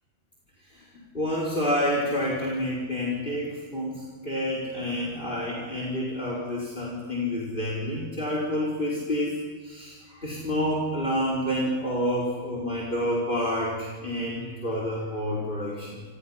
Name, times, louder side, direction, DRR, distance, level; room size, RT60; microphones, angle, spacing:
voice 1, 1.1-16.0, equal, 35° left, -3 dB, 4.8 m, -29 dB
29.0 x 28.5 x 5.8 m, 1.4 s
omnidirectional pair, 1.5 m